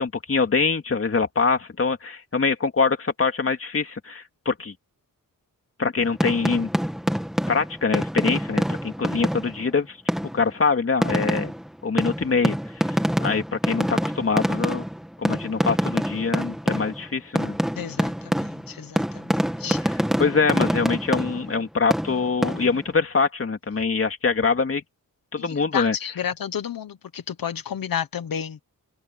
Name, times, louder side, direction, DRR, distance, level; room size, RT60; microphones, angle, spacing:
voice 1, 0.0-4.7 5.8-6.7 7.5-10.0 10.3-11.5 11.8-12.5 12.8-14.8 15.2-17.6 20.2-24.8 25.3-26.0, left 4 dB, 40° left, 2.9 m, -24 dB
sound 1, 6.0-9.7 10.1-10.5 11.0-17.1 17.4-21.6 21.9-22.9, equal, ahead, 2.2 m, -26 dB
voice 2, 17.8-19.0 19.6-19.8 25.7-28.6, left 8 dB, 85° left, 1.2 m, -31 dB
wide cardioid pair, 150°, 34 cm